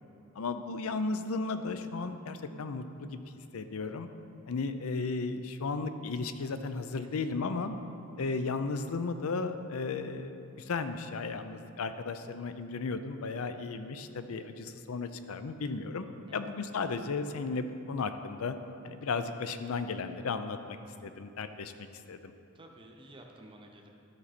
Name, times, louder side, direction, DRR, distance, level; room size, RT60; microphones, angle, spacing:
voice 1, 0.4-3.2 3.5-4.1 4.5-7.8 8.2-16.0 16.3-18.5 18.8-20.8 21.0-22.3, left 4 dB, 70° left, 9 dB, 0.5 m, -35 dB
voice 2, 7.0-7.4 16.3-16.5 22.5-23.9, right 1 dB, 25° right, 1 dB, 0.8 m, -52 dB
12.5 x 5.9 x 4.2 m, 2.7 s
head